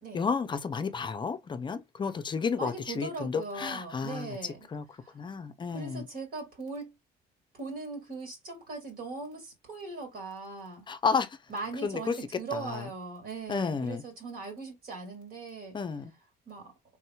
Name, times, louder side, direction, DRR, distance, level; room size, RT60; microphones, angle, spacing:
voice 1, 0.1-4.4 4.7-4.8 5.1-6.1 10.9-11.4 11.8-12.2 12.5-12.8 13.5-14.0 15.7-16.1, left 5 dB, 30° left, 0.5 m, -31 dB
voice 2, 2.6-4.7 5.0-5.2 5.7-6.9 7.5-10.8 11.5-15.8 16.5-16.7, right 3 dB, 60° right, 2.0 m, -39 dB
3.6 x 2.9 x 2.2 m
cardioid pair, 110°, 17 cm